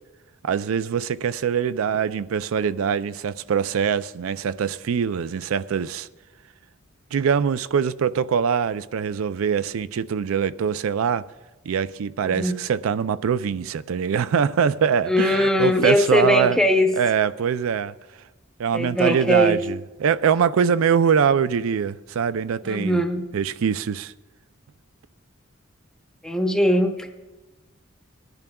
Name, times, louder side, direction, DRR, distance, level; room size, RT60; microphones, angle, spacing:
voice 1, 0.4-6.1 7.1-11.2 11.7-16.6 16.9-17.9 18.6-23.0 23.3-24.1, right 7 dB, 85° right, 0.4 m, -23 dB
voice 2, 12.2-12.6 15.1-16.9 18.7-19.6 22.6-23.2 26.2-27.1, equal, 5° left, 0.7 m, -20 dB
20.0 x 10.5 x 2.3 m
head